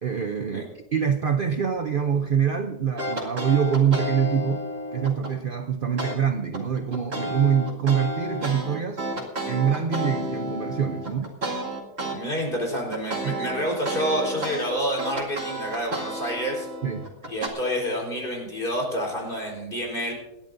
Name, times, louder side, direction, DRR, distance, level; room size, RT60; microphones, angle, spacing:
voice 1, 0.0-4.6 4.9-9.0 9.5-11.3 13.2-13.4 16.8-17.1, right 7 dB, 70° right, 7 dB, 0.5 m, -25 dB
sound 1, 3.0-5.3 6.0-6.2 6.5-12.2 12.5-17.5, right 1 dB, 40° right, 2.5 m, -31 dB
voice 2, 12.1-16.7 17.3-20.1, equal, 30° left, -1 dB, 4.3 m, -28 dB
27.0 x 11.5 x 2.6 m, 1.0 s
omnidirectional pair, 1.7 m